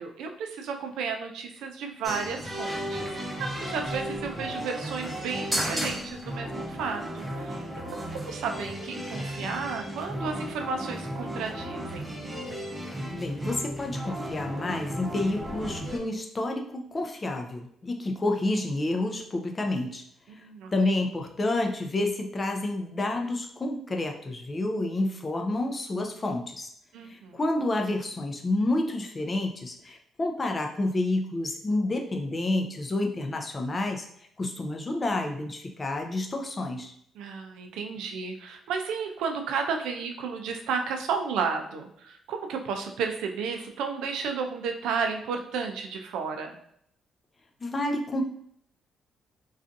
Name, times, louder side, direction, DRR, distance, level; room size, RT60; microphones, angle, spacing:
voice 1, 0.0-7.6 7.9-12.1 20.3-20.7 26.9-27.4 37.2-46.6, right 5 dB, 90° right, 4 dB, 0.4 m, -33 dB
sound 1, 2.0-16.0, equal, 15° right, 0.7 m, -34 dB
voice 2, 13.1-20.0 20.7-26.7 27.0-34.1 34.4-36.9 47.6-48.2, left 2 dB, 30° left, 3 dB, 0.4 m, -29 dB
2.5 x 2.3 x 2.5 m, 0.70 s
cardioid pair, 90°, 0 cm